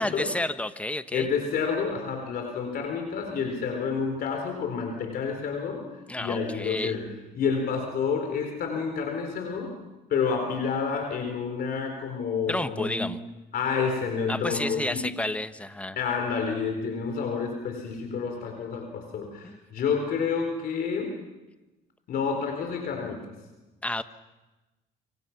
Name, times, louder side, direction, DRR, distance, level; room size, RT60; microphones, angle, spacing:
voice 1, 0.0-1.3 6.1-7.0 12.5-13.2 14.3-16.0 19.4-19.6 23.8-24.0, left 1 dB, 10° left, 11 dB, 1.1 m, -30 dB
voice 2, 1.1-5.8 6.2-7.0 7.3-9.7 10.1-13.1 13.5-15.1 16.0-21.2 22.1-23.3, left 5 dB, 60° left, 4 dB, 4.1 m, -29 dB
27.5 x 24.5 x 5.9 m, 1.1 s
cardioid pair, 110°, 17 cm